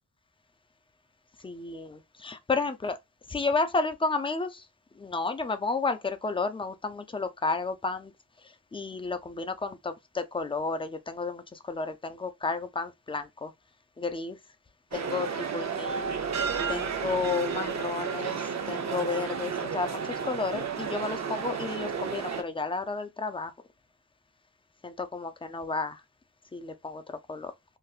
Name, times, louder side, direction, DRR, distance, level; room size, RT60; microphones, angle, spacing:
voice 1, 1.4-3.0 3.3-4.7 4.9-8.1 8.4-13.5 14.0-14.4 14.9-16.2 16.7-23.5 24.8-26.0 26.5-27.5, left 4 dB, 15° left, 0.4 m, -32 dB
sound 1, 14.9-22.4, right 6 dB, 50° right, 0.6 m, -32 dB
3.4 x 2.6 x 2.4 m
wide cardioid pair, 125°, 37 cm